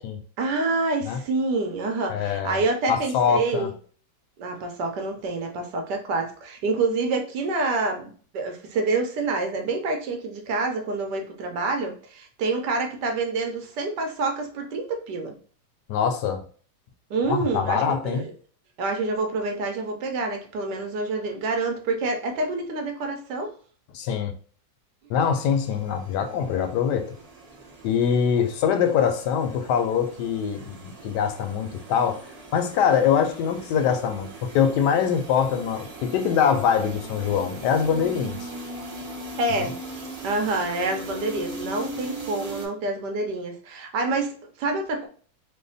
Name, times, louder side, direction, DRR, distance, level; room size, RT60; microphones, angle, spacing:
voice 1, 0.4-3.7 4.4-15.4 17.1-18.3 18.8-23.5 39.4-39.8 40.2-45.1, right 3 dB, 80° right, 1.3 m, -27 dB
voice 2, 2.1-2.6 2.9-3.7 15.9-16.4 17.3-18.2 23.9-24.3 25.1-27.1 27.8-32.2 32.5-38.4, left 7 dB, 75° left, 1.1 m, -23 dB
sound 1, 25.5-42.7, right 2 dB, 45° right, 0.4 m, -40 dB
3.3 x 2.1 x 3.8 m
omnidirectional pair, 1.9 m